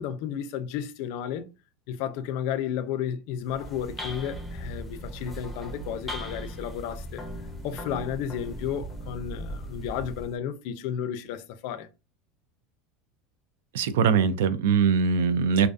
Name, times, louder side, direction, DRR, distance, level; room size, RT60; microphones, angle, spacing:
voice 1, 0.0-1.4 1.9-7.2 7.6-11.9, left 9 dB, 60° left, 0.4 m, -32 dB
sound 1, 3.4-10.4, equal, 5° left, 0.5 m, -38 dB
voice 2, 13.7-15.7, right 6 dB, 90° right, 0.3 m, -22 dB
2.4 x 2.3 x 2.5 m
supercardioid pair, 155°, 0 cm